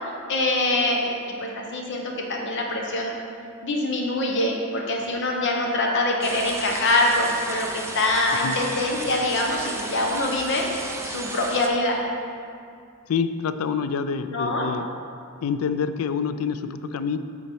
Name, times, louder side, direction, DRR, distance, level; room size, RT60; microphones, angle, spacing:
voice 1, 0.3-1.1 1.4-3.1 3.6-10.7 11.0-12.0 14.3-14.7, left 2 dB, 60° left, 0 dB, 1.0 m, -24 dB
sound 1, 6.2-11.7, right 2 dB, 15° right, 0.5 m, -34 dB
voice 2, 13.1-14.9 15.4-17.2, left 6 dB, 90° left, 11 dB, 0.4 m, -27 dB
8.3 x 4.1 x 4.5 m, 2.3 s
head